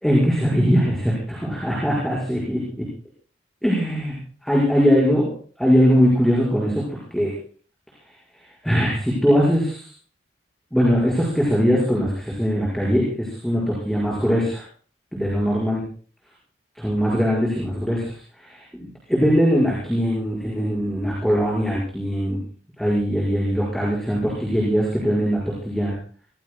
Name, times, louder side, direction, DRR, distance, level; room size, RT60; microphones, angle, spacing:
voice 1, 0.0-2.9 3.6-5.3 5.6-7.3 8.6-9.9 10.7-14.6 15.1-15.8 16.8-22.4 22.8-26.0, equal, ahead, -6 dB, 5.3 m, -21 dB
26.0 x 20.0 x 2.3 m, 0.43 s
head